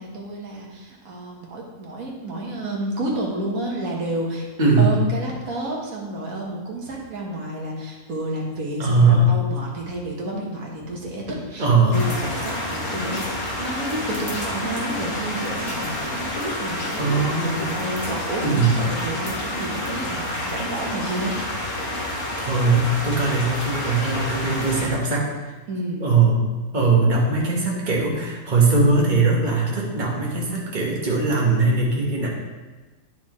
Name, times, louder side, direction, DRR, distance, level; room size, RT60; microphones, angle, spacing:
voice 1, 0.0-4.5 4.8-17.3 17.8-21.4 25.7-26.3, right 1 dB, 70° right, -2 dB, 1.8 m, -30 dB
voice 2, 4.6-5.0 8.8-9.3 11.6-12.0 17.0-17.7 18.4-18.8 22.1-25.3 26.0-26.4 26.7-32.3, right 3 dB, 30° right, -3 dB, 1.5 m, -20 dB
sound 1, 11.9-24.9, left 1 dB, 70° left, 2.0 m, -29 dB
9.7 x 6.1 x 3.1 m, 1.2 s
omnidirectional pair, 1.6 m